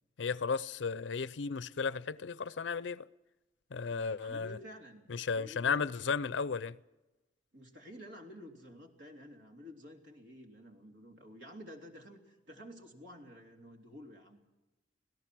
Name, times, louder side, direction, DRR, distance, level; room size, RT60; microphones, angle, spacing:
voice 1, 0.2-3.0 3.7-4.6 5.1-6.8, left 5 dB, 90° left, 0.6 m, -34 dB
voice 2, 3.9-5.9 7.5-14.4, equal, 80° right, 3.2 m, -51 dB
26.0 x 17.0 x 6.1 m
head